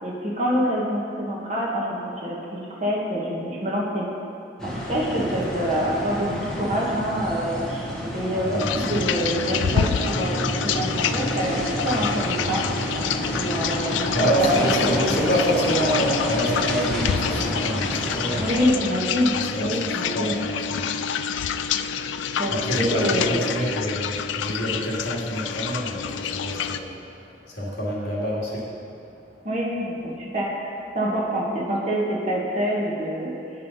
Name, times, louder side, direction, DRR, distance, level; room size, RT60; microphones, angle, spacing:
voice 1, 0.0-4.0 4.6-10.3 10.6-11.6 11.8-12.6 13.3-15.3 18.4-20.4 22.4-23.4 29.4-33.3, equal, 35° right, -5 dB, 1.4 m, -26 dB
sound 1, 4.6-18.7, equal, 5° left, 1.0 m, -30 dB
voice 2, 8.4-9.0 14.1-18.9 19.5-20.9 22.5-27.0 27.5-28.6, equal, 55° left, -6 dB, 2.2 m, -27 dB
sound 2, 8.6-26.8, left 7 dB, 80° left, 0.3 m, -27 dB
8.0 x 5.5 x 5.5 m, 2.6 s
head